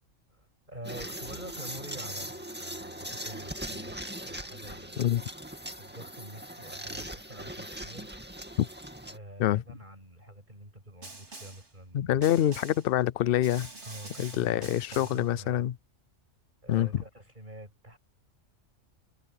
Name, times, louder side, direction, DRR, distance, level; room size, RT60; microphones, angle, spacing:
voice 1, 0.3-5.1 5.8-8.1 9.1-12.2 13.8-15.7 16.6-18.0, right 1 dB, 40° right, 7.1 m, -47 dB
sound 1, 0.8-9.2, right 1 dB, 10° right, 2.1 m, -40 dB
Snare drum, 11.0-11.7 12.2-12.9 13.4-15.3, right 2 dB, 60° right, 4.0 m, -46 dB
voice 2, 11.9-13.7 14.2-15.7 16.7-16.9, left 12 dB, 60° left, 0.6 m, -26 dB
omnidirectional pair, 1.3 m